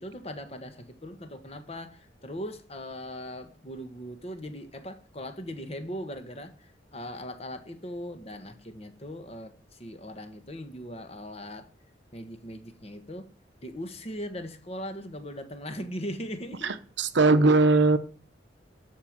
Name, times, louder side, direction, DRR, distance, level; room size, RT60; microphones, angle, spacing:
voice 1, 0.0-11.7 12.1-13.3 13.6-16.7, equal, 35° left, 1.4 m, -39 dB
voice 2, 17.0-18.0, right 3 dB, 75° right, 0.8 m, -19 dB
12.5 x 4.8 x 7.6 m
head